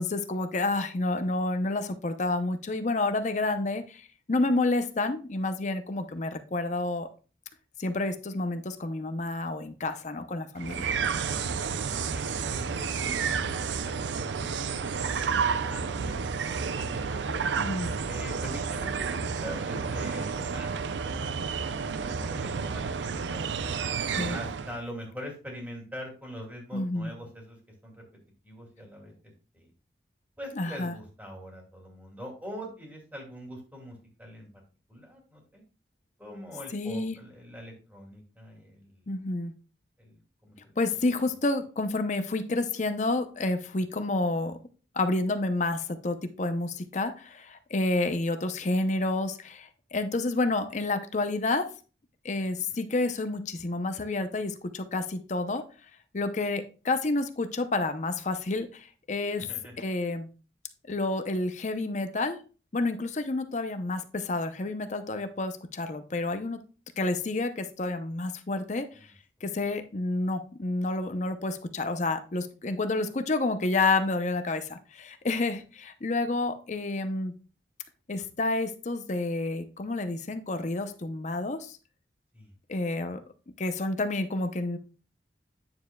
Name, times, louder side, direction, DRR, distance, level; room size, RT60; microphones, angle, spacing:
voice 1, 0.0-7.1 7.8-10.9 17.6-17.9 24.2-24.4 26.7-27.1 30.6-30.9 36.7-37.2 39.1-39.5 40.8-44.6 44.9-51.7 52.2-55.6 56.1-59.5 59.8-60.3 60.9-62.4 62.7-66.6 67.0-68.9 69.4-77.3 78.1-81.8 82.7-83.2 83.6-84.8, left 2 dB, 40° left, 8 dB, 0.6 m, -29 dB
sound 1, 10.6-24.8, right 5 dB, 75° right, 0.5 m, -31 dB
voice 2, 11.9-14.6 15.0-17.5 18.0-21.3 21.8-23.7 24.3-27.6 27.8-28.0 28.4-29.1 29.5-29.7 30.4-34.5 34.9-35.6 36.2-39.0 40.0-41.0 44.0-44.1 52.6-52.8 59.4-59.7 69.0-69.1 82.3-82.5, equal, 10° right, 0 dB, 2.4 m, -43 dB
9.5 x 6.9 x 2.2 m, 0.35 s
head